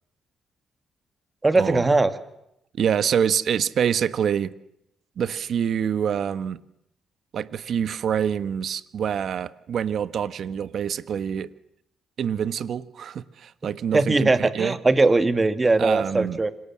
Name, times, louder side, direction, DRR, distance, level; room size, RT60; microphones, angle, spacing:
voice 1, 1.4-2.1 13.9-16.5, right 3 dB, 20° right, 2.3 m, -20 dB
voice 2, 2.7-4.5 5.2-6.6 7.3-11.5 12.2-14.8 15.8-16.4, right 8 dB, 60° right, 1.4 m, -26 dB
28.5 x 25.5 x 7.6 m
cardioid pair, 90°, 0 cm